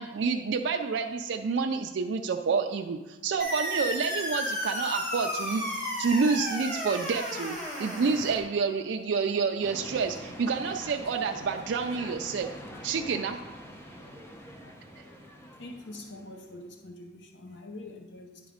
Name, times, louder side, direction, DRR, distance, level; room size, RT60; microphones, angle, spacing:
voice 1, 0.0-5.6 6.0-12.5 12.8-13.4, right 5 dB, 65° right, 0.4 m, -28 dB
sound 1, 3.4-8.4, equal, 40° left, 2.1 m, -33 dB
sound 2, 9.6-16.6, equal, 15° left, 0.7 m, -45 dB
voice 2, 15.6-18.4, left 2 dB, 65° left, 0.7 m, -44 dB
10.5 x 4.0 x 5.0 m
head